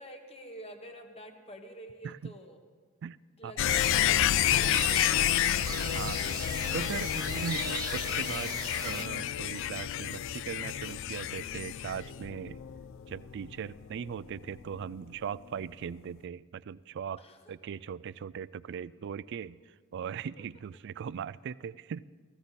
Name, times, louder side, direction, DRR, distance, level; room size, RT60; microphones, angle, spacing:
voice 1, 0.0-2.7 3.4-4.3 4.6-5.9 6.2-6.7 7.1-7.3 17.2-17.5, right 1 dB, 25° left, 5 dB, 1.1 m, -49 dB
sound 1, 3.6-14.4 14.7-14.8, left 11 dB, 60° left, 0.3 m, -30 dB
sound 2, 3.7-9.0, right 5 dB, 15° right, 0.7 m, -39 dB
voice 2, 6.7-8.5 8.8-12.6 13.1-17.2 17.5-19.6 19.9-22.0, right 7 dB, 55° right, 18 dB, 0.3 m, -39 dB
15.5 x 15.5 x 4.1 m, 1.5 s
head